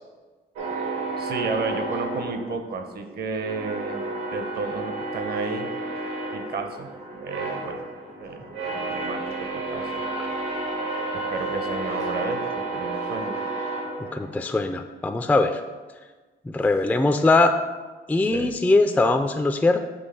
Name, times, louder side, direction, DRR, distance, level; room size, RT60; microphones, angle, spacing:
sound 1, 0.6-3.0 3.4-14.6, right 2 dB, 85° right, 1.6 m, -31 dB
voice 1, 1.2-4.0 4.3-5.7 6.3-7.9 8.2-10.0 11.3-13.4 18.3-18.6, right 4 dB, 55° right, 7 dB, 0.8 m, -32 dB
voice 2, 14.0-15.6 16.5-17.5 18.1-19.8, left 2 dB, 5° left, 7 dB, 0.3 m, -21 dB
6.3 x 3.0 x 5.6 m, 1.3 s
cardioid pair, 90°, 20 cm